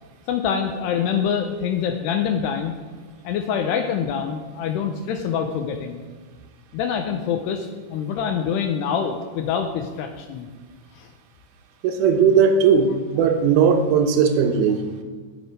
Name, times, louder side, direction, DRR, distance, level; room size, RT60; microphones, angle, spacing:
voice 1, 0.3-2.7 3.2-6.0 6.7-10.5 11.0-11.1, left 7 dB, 80° left, 6 dB, 2.5 m, -25 dB
voice 2, 11.8-14.8, right 6 dB, 75° right, 5 dB, 2.9 m, -18 dB
16.5 x 6.4 x 5.1 m, 1.5 s
omnidirectional pair, 5.3 m